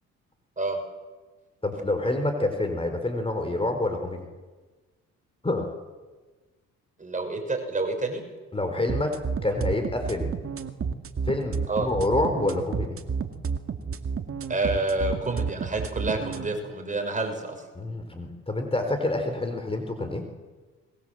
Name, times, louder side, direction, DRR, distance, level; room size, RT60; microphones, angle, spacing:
voice 1, 1.6-4.2 5.4-5.7 8.5-10.4 11.3-13.0 17.7-20.2, left 2 dB, 20° left, 6 dB, 4.1 m, -27 dB
voice 2, 7.0-8.2 11.7-11.9 14.5-17.6, right 2 dB, 25° right, 4 dB, 6.0 m, -28 dB
sound 1, 8.9-16.5, right 6 dB, 45° right, 2.1 m, -30 dB
26.0 x 22.0 x 7.8 m, 1.3 s
cardioid pair, 90°, 30 cm